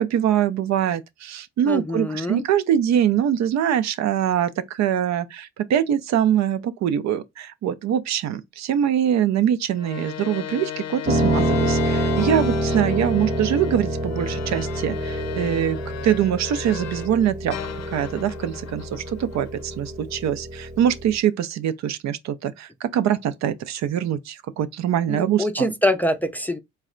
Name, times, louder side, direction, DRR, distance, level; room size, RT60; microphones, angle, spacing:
voice 1, 0.0-15.8 16.0-17.6 17.9-25.7, right 9 dB, 65° right, 0.5 m, -23 dB
voice 2, 1.7-2.4 25.1-26.6, equal, 5° left, 0.4 m, -24 dB
sound 1, 9.8-17.2 17.5-19.9, left 10 dB, 60° left, 0.6 m, -36 dB
Piano, 11.0-21.2, right 1 dB, 25° right, 0.8 m, -27 dB
4.0 x 2.2 x 3.7 m
cardioid pair, 90°, 30 cm